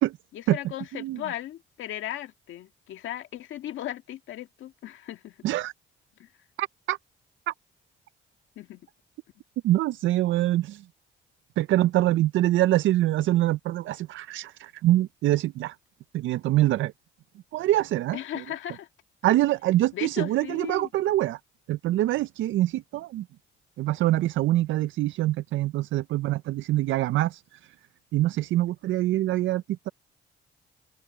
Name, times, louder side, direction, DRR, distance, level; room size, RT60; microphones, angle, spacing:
voice 1, 0.3-5.4 6.2-6.3 8.6-8.9 18.1-18.9 19.9-20.9, left 12 dB, 80° left, 1.9 m, -37 dB
voice 2, 6.6-7.0 7.5-7.6 9.6-10.9 11.6-15.8 16.1-16.9 17.5-18.4 19.2-21.4 21.7-23.3 23.8-27.7 28.1-29.9, right 15 dB, 75° right, 0.5 m, -25 dB
open air
cardioid pair, 90°, 20 cm